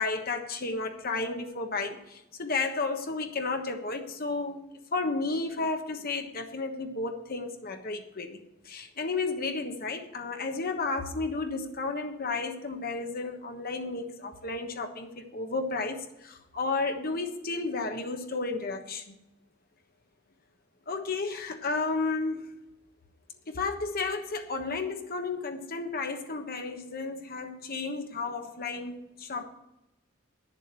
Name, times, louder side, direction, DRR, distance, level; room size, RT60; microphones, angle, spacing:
voice 1, 0.0-4.6 4.9-19.2 20.9-22.5 23.5-29.4, left 3 dB, 45° left, 1.3 m, -32 dB
9.5 x 7.3 x 8.2 m
head